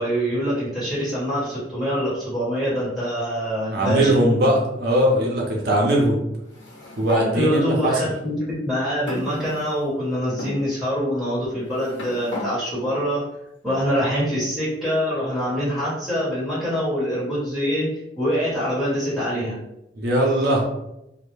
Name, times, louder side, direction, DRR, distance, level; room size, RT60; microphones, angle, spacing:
voice 1, 0.0-4.1 7.3-13.3 13.6-17.9 18.1-19.6, equal, ahead, -10 dB, 1.1 m, -24 dB
voice 2, 3.7-6.2 7.0-7.9 20.0-20.6, right 1 dB, 60° right, -2 dB, 0.6 m, -20 dB
sound 1, 6.5-7.3 8.1-8.2 9.1-9.9 10.4-10.6 11.5-12.5, left 1 dB, 80° left, 0.8 m, -34 dB
2.1 x 2.1 x 3.0 m, 0.86 s
head